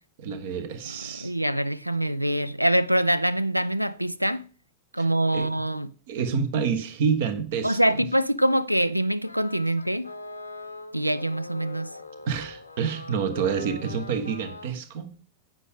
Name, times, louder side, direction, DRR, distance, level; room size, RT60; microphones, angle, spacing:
voice 1, 0.2-1.3 5.0-5.1 5.3-5.6 6.1-8.0 12.3-15.1, right 6 dB, 55° right, 1.2 m, -28 dB
voice 2, 1.1-4.5 4.9-5.9 7.6-10.1 10.9-11.9, right 1 dB, 90° right, 0.3 m, -24 dB
sound 1, 9.2-14.7, left 2 dB, 85° left, 0.8 m, -41 dB
9.9 x 7.5 x 3.6 m
figure-of-eight pair, 90°, 0 cm